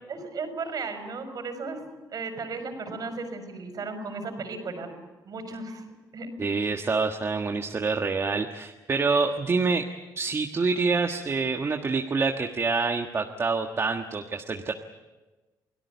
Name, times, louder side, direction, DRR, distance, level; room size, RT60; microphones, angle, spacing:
voice 1, 0.1-1.8 2.1-4.9 5.2-5.8 6.1-6.6, right 4 dB, 55° right, 7 dB, 5.5 m, -35 dB
voice 2, 6.4-9.8 10.2-14.7, right 4 dB, 35° right, 4 dB, 1.5 m, -26 dB
28.5 x 18.0 x 8.2 m, 1.2 s
cardioid pair, 90°, 8 cm